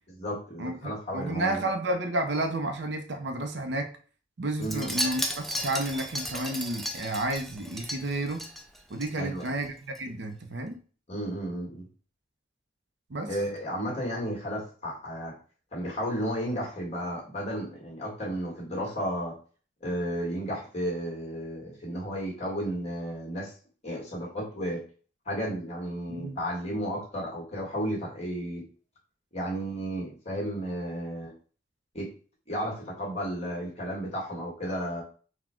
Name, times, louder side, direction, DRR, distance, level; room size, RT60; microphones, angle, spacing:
voice 1, 0.1-1.7 4.6-4.9 9.2-9.5 11.1-11.9 13.3-15.4 15.7-19.4 19.8-23.5 23.8-24.8 25.2-28.6 29.3-31.3 31.9-32.1 32.5-35.0, equal, 30° left, -2 dB, 1.6 m, -33 dB
voice 2, 0.6-3.9 4.4-8.4 8.9-10.8 13.1-13.3 26.1-26.4, right 1 dB, 60° right, 5 dB, 0.6 m, -31 dB
Wind chime, 4.6-9.1 9.4-9.7 9.9-10.0, equal, ahead, 0.3 m, -34 dB
4.1 x 2.2 x 4.4 m, 0.40 s
head